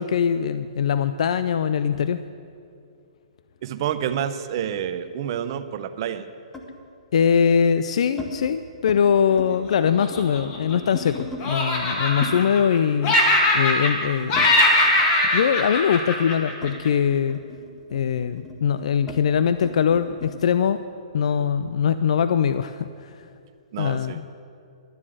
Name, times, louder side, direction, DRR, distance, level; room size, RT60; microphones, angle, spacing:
voice 1, 0.0-2.2 7.1-13.1 13.5-14.5 15.3-17.4 17.9-20.8 21.1-23.3 23.8-24.1, left 7 dB, 65° left, 12 dB, 0.4 m, -22 dB
voice 2, 3.6-6.3 23.7-24.2, right 9 dB, 40° right, 11 dB, 0.6 m, -28 dB
sound 1, 3.7-5.2 6.5-6.8 7.5-8.3 8.7-9.0 9.3-11.5 12.2-15.1 15.4-20.4, left 3 dB, 5° left, 1.1 m, -40 dB
Laughter, 9.8-11.1 11.4-12.8 13.0-14.0 14.3-16.9, left 1 dB, 30° left, 1.7 m, -21 dB
12.0 x 7.3 x 7.8 m, 2.5 s
hypercardioid pair, 155°, 4 cm